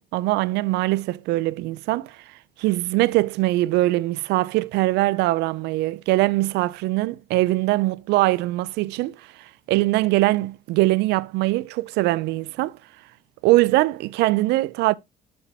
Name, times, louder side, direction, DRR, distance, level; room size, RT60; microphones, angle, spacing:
voice 1, 0.0-2.2 2.6-12.8 13.4-14.9, right 18 dB, 85° right, 0.4 m, -22 dB
12.5 x 4.3 x 2.8 m
cardioid pair, 110°, 17 cm